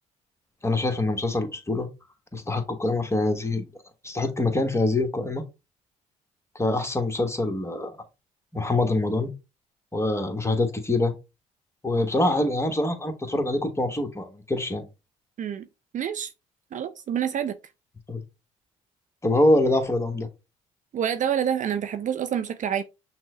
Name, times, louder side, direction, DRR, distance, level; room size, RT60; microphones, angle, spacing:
voice 1, 0.6-1.9 2.3-3.6 4.0-5.4 6.5-8.0 8.5-9.3 9.9-11.1 11.8-14.8 18.1-18.2 19.2-20.3, left 2 dB, 15° left, 1.2 m, -24 dB
voice 2, 15.9-16.3 16.7-17.6 20.9-22.8, right 9 dB, 45° right, 0.5 m, -27 dB
6.1 x 2.1 x 3.7 m
hypercardioid pair, 55°, 18 cm